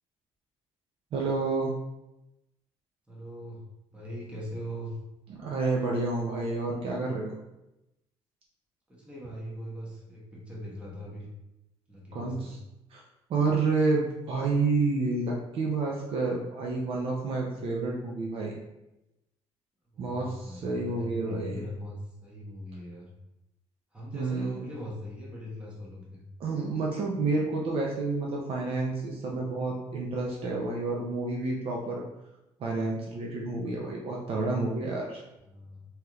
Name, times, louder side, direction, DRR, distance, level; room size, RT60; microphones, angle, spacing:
voice 1, 1.1-1.7 5.3-7.3 12.1-12.6 12.9-13.0 13.3-18.6 20.0-21.6 24.1-24.6 26.4-32.0 32.6-35.2, right 3 dB, 55° right, -2 dB, 0.5 m, -29 dB
voice 2, 3.1-3.6 3.9-5.0 8.9-11.3 11.9-12.6 19.9-23.1 23.9-26.2 35.4-35.9, equal, 10° right, -5 dB, 1.0 m, -41 dB
3.2 x 2.8 x 2.4 m, 0.92 s
cardioid pair, 115°, 12 cm